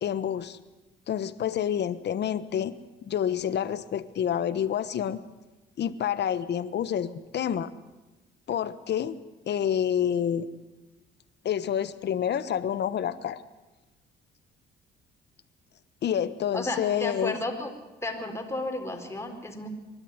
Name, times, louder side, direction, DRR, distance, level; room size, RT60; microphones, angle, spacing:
voice 1, 0.0-0.6 1.1-5.2 5.8-7.7 8.5-9.2 9.4-10.5 11.4-13.4 16.0-17.4, left 9 dB, 60° left, 13 dB, 1.3 m, -28 dB
voice 2, 16.5-17.7 18.0-19.7, left 2 dB, 15° left, 4 dB, 4.3 m, -33 dB
23.5 x 12.5 x 9.8 m, 1.1 s
cardioid pair, 85°, 20 cm